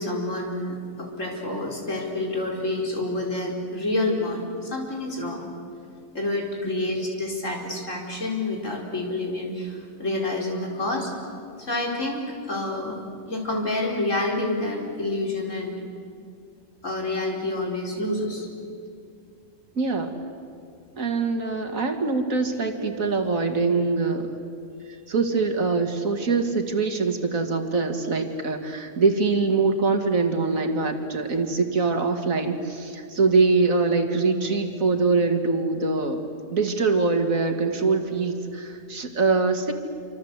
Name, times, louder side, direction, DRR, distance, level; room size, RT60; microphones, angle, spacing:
voice 1, 0.0-5.4 6.1-11.1 11.6-13.0 13.3-15.8 16.8-18.5, left 2 dB, 65° left, 0 dB, 4.8 m, -28 dB
voice 2, 19.8-20.1 21.0-24.2 25.1-36.2 36.5-39.7, right 4 dB, 80° right, 6 dB, 2.5 m, -23 dB
27.5 x 26.0 x 8.2 m, 2.4 s
omnidirectional pair, 1.4 m